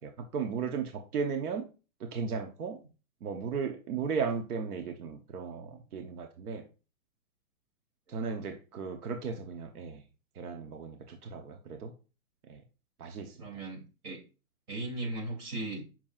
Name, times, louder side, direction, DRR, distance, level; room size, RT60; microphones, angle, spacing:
voice 1, 0.0-1.7 2.0-2.8 3.2-6.6 8.1-10.0 10.4-11.9 12.5-12.6 13.0-13.4, right 5 dB, 75° right, 5 dB, 1.1 m, -35 dB
voice 2, 13.4-14.2 14.7-15.9, right 2 dB, 30° right, -2 dB, 3.0 m, -37 dB
7.5 x 6.0 x 2.4 m, 0.33 s
hypercardioid pair, 165°, 45 cm